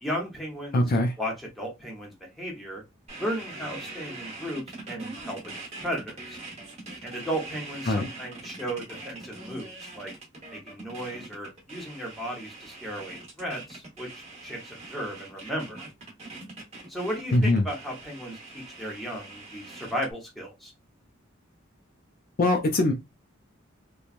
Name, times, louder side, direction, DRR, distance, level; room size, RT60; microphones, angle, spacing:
voice 1, 0.0-0.9 1.2-2.8 3.2-6.4 7.0-10.1 10.5-15.9 16.9-20.7, equal, ahead, 1.0 m, -35 dB
voice 2, 0.7-1.1 7.9-8.1 17.3-17.7 22.4-22.9, left 2 dB, 45° left, 0.5 m, -22 dB
sound 1, 3.1-20.1, right 2 dB, 35° right, 1.1 m, -42 dB
3.0 x 2.2 x 2.4 m
head